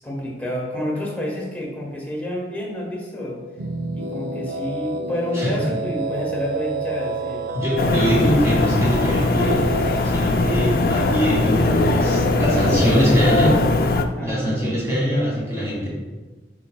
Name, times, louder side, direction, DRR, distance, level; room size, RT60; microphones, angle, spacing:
voice 1, 0.0-3.4 3.9-7.5 12.5-13.1 14.1-14.7, left 1 dB, 10° left, -3 dB, 1.1 m, -29 dB
sound 1, 3.6-13.7, right 1 dB, 70° right, 0.5 m, -29 dB
voice 2, 5.3-5.7 7.5-9.7 10.0-13.6 14.2-15.9, equal, 15° right, -7 dB, 1.9 m, -22 dB
sound 2, 7.8-14.1, left 3 dB, 50° left, 0.4 m, -20 dB
8.4 x 4.9 x 2.3 m, 1.3 s
head